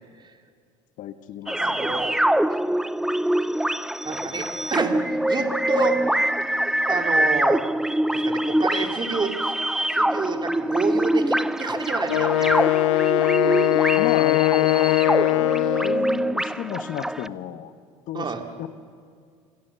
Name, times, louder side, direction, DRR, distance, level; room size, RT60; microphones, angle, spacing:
voice 1, 1.0-2.1 13.9-15.1 15.8-17.7 18.1-18.3 18.6-18.7, left 11 dB, 55° left, 11 dB, 1.2 m, -32 dB
sound 1, 1.5-17.3, right 1 dB, 5° right, 0.5 m, -24 dB
voice 2, 1.6-2.2 4.0-5.0 5.3-6.0 6.9-7.6 8.1-9.5 9.9-12.7 15.2-15.7 18.1-18.4, right 4 dB, 30° right, 5 dB, 2.5 m, -29 dB
Wind instrument woodwind instrument, 12.1-16.1, left 19 dB, 85° left, 0.4 m, -21 dB
25.5 x 16.5 x 6.9 m, 2.1 s
hypercardioid pair, 75°, 16 cm